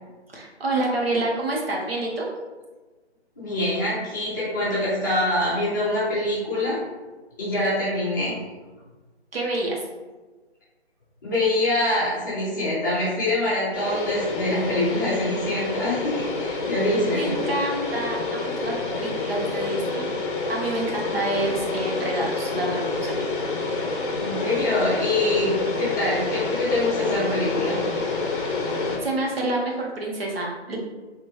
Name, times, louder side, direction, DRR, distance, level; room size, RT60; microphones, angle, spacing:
voice 1, 0.3-2.3 9.3-9.8 17.1-20.1 20.5-23.2 28.5-28.7 29.0-30.8, right 2 dB, 55° right, -2 dB, 1.0 m, -28 dB
voice 2, 3.4-6.8 7.4-8.3 11.2-17.3 24.2-27.8, left 1 dB, 15° left, -10 dB, 0.8 m, -24 dB
sound 1, 13.7-29.0, left 3 dB, 50° left, 0.7 m, -28 dB
3.4 x 3.2 x 3.1 m, 1.2 s
hypercardioid pair, 160°, 34 cm